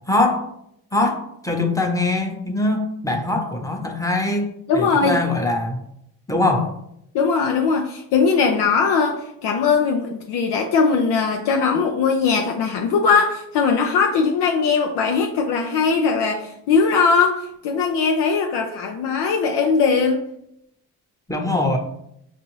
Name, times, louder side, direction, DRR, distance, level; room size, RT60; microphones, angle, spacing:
voice 1, 0.1-0.5 0.9-5.8 6.3-6.7 21.3-21.8, left 2 dB, 10° left, 2 dB, 0.9 m, -22 dB
voice 2, 4.7-5.2 7.1-20.2, left 5 dB, 75° left, 3 dB, 0.6 m, -20 dB
5.3 x 2.5 x 3.1 m, 0.75 s
supercardioid pair, 55°, 41 cm